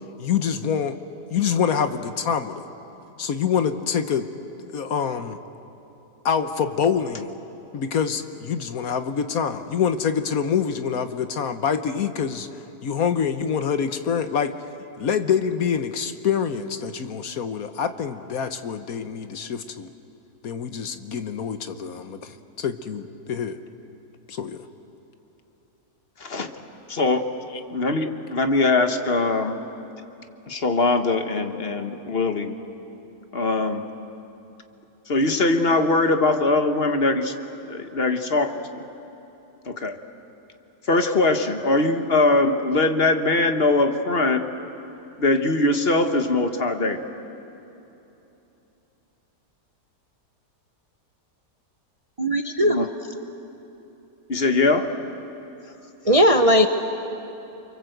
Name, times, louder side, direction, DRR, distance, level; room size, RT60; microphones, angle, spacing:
voice 1, 0.2-1.0 1.3-2.6 3.2-4.3 4.7-5.4 6.2-7.3 7.7-12.5 12.8-14.5 15.0-19.9 20.4-23.6 24.3-24.6 27.5-27.6, left 7 dB, 65° left, 9 dB, 1.4 m, -25 dB
voice 2, 26.9-27.3 27.7-29.6 30.5-32.5 33.3-33.9 35.1-37.3 37.7-38.6 39.7-40.0 40.9-44.4 45.2-47.0 52.6-52.9 54.3-54.9, left 2 dB, 40° left, 7 dB, 1.4 m, -21 dB
voice 3, 52.2-52.9 56.0-56.7, equal, 30° right, 6 dB, 0.8 m, -17 dB
30.0 x 23.5 x 8.0 m, 3.0 s
omnidirectional pair, 1.7 m